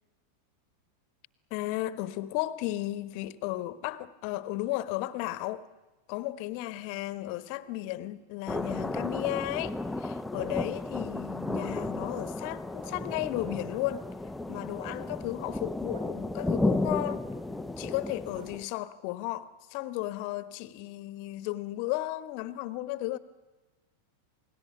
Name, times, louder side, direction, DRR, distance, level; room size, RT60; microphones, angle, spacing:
voice 1, 1.5-5.6 6.1-14.1 14.5-17.3 17.8-23.2, left 16 dB, 45° left, 1.3 m, -34 dB
Bark, 5.3-5.5 5.9-6.0 6.3-6.4 6.7-6.8 8.2-8.3 10.8-10.9 11.7-12.0 12.8-13.1 14.3-14.4 14.8-15.1 15.9-16.2 17.0-17.3 18.3-18.7 19.7-19.8, right 3 dB, 65° right, 2.1 m, -52 dB
sound 1, 8.5-18.6, left 2 dB, 5° left, 0.9 m, -33 dB
28.5 x 19.0 x 9.5 m
figure-of-eight pair, 90°, 0 cm